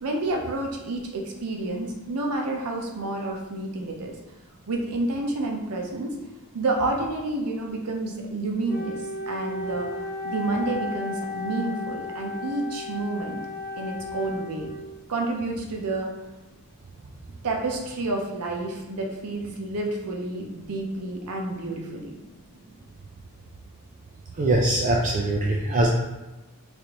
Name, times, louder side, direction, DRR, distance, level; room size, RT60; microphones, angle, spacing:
voice 1, 0.0-4.1 4.7-6.2 6.5-9.0 9.3-9.9 10.2-13.4 13.8-14.7 15.1-16.1 17.4-22.1, right 2 dB, 80° right, 1 dB, 0.6 m, -29 dB
Wind instrument woodwind instrument, 8.7-15.0, left 2 dB, 15° left, 0.5 m, -34 dB
voice 2, 24.4-25.9, right 2 dB, 35° right, -2 dB, 0.3 m, -22 dB
3.2 x 2.5 x 2.9 m, 1.1 s
head